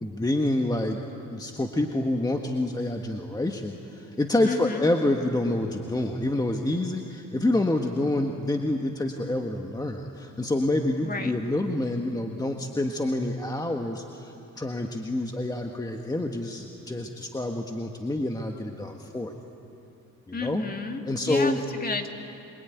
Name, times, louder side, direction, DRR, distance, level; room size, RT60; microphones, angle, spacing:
voice 1, 0.0-1.0 1.3-19.3 20.3-20.6 21.1-21.6, left 1 dB, 15° left, 3 dB, 1.6 m, -27 dB
voice 2, 4.4-4.9 11.0-11.3 20.3-22.1, left 4 dB, 30° left, 4 dB, 2.6 m, -32 dB
26.0 x 23.5 x 9.5 m, 2.8 s
cardioid pair, 90°, 30 cm